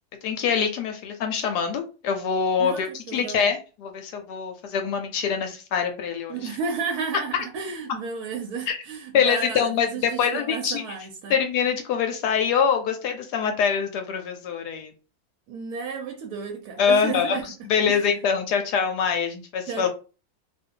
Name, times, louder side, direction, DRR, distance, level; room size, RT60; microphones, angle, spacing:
voice 1, 0.2-6.5 8.7-8.8 9.1-10.8 11.3-14.9 16.8-17.4 17.7-19.9, left 7 dB, 70° left, 1.1 m, -24 dB
voice 2, 2.6-3.5 6.3-11.4 15.5-17.5 17.9-18.0 19.7-19.9, right 5 dB, 65° right, 1.0 m, -33 dB
2.7 x 2.5 x 3.6 m
omnidirectional pair, 2.0 m